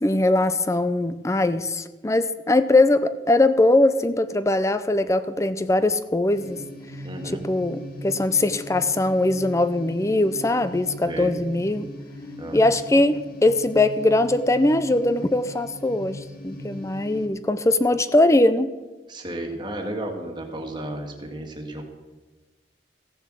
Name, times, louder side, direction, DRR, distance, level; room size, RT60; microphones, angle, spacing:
voice 1, 0.0-6.6 7.5-11.9 12.5-18.7, left 2 dB, 15° left, 12 dB, 0.5 m, -21 dB
sound 1, 6.3-17.3, equal, 50° left, 1.9 m, -39 dB
voice 2, 7.0-7.4 11.1-11.4 12.4-12.6 19.1-21.8, right 1 dB, 25° right, 3 dB, 1.8 m, -33 dB
15.0 x 7.0 x 7.6 m, 1.2 s
head